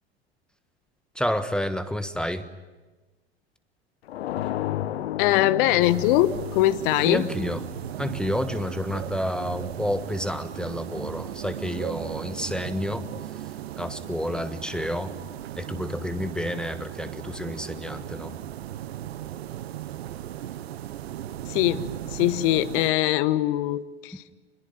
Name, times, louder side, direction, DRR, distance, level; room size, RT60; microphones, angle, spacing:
voice 1, 1.1-2.5 7.0-7.6 8.0-15.1 15.5-18.4, equal, 5° left, 10 dB, 1.3 m, -30 dB
sound 1, 4.1-8.8, left 12 dB, 70° left, 0.9 m, -33 dB
voice 2, 5.2-7.3 21.5-24.2, left 15 dB, 55° left, 14 dB, 1.4 m, -22 dB
sound 2, 5.8-22.9, right 12 dB, 65° right, 1.1 m, -37 dB
27.5 x 22.0 x 9.3 m, 1.2 s
figure-of-eight pair, 90°, 33 cm